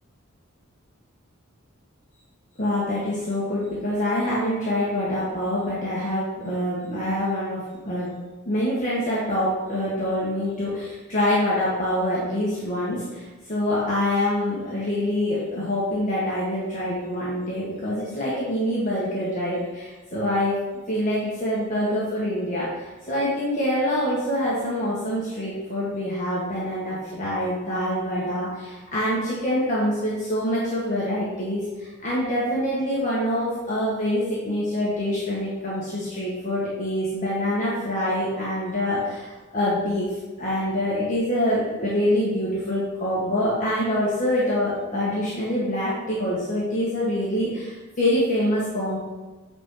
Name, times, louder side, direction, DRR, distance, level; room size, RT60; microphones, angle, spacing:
voice 1, 2.6-8.1 8.4-20.6 20.9-22.7 23.1-40.1 40.4-49.0, left 1 dB, 35° left, -8 dB, 1.5 m, -25 dB
9.0 x 4.2 x 3.8 m, 1.2 s
head